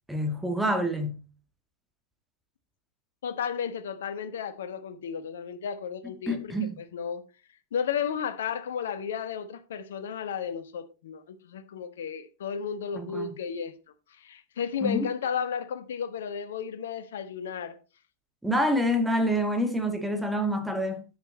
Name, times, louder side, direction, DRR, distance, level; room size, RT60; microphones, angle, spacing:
voice 1, 0.1-1.2 6.3-6.8 12.9-13.3 14.8-15.1 18.4-21.0, equal, 5° right, 2.3 m, -27 dB
voice 2, 3.2-7.2 7.7-13.7 14.2-17.8, left 7 dB, 60° left, 1.4 m, -33 dB
10.0 x 8.1 x 4.2 m
figure-of-eight pair, 90°, 0 cm